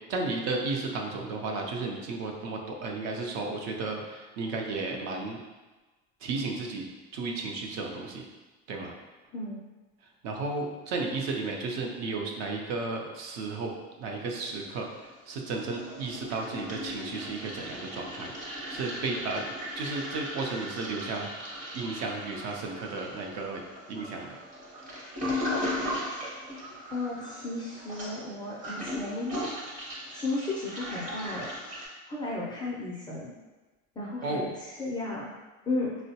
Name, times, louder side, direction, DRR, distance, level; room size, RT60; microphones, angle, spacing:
voice 1, 0.1-5.4 6.2-6.9 7.1-8.2 8.7-8.9 10.2-13.7 14.0-14.9 15.3-18.3 18.7-19.4 19.8-21.3 21.7-23.6 23.9-24.3 34.2-34.4, right 3 dB, 60° right, 1 dB, 0.6 m, -33 dB
Toilet flush, 14.3-15.1 15.4-31.9, left 1 dB, 25° right, 0.7 m, -37 dB
voice 2, 26.9-29.3 30.1-31.6 32.1-33.3 34.0-35.3 35.7-36.0, left 2 dB, 15° left, -6 dB, 0.3 m, -34 dB
3.7 x 2.1 x 2.7 m, 1.2 s
cardioid pair, 140°, 33 cm